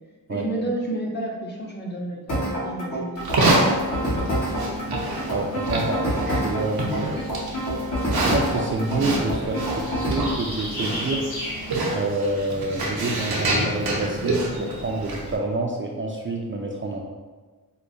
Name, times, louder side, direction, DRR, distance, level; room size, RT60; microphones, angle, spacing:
voice 1, 0.3-4.0, right 1 dB, 30° left, -3 dB, 0.8 m, -31 dB
sound 1, 2.3-10.3, equal, 55° left, 1.2 m, -27 dB
Livestock farm animals working animals, 3.2-15.4, right 1 dB, 85° right, 0.7 m, -27 dB
sound 2, 3.8-11.7, left 1 dB, 85° left, 1.3 m, -36 dB
voice 2, 5.3-7.1 8.1-11.2 11.9-17.0, right 2 dB, 35° right, -1 dB, 0.4 m, -28 dB
4.7 x 2.1 x 2.6 m, 1.3 s
wide cardioid pair, 70°, 36 cm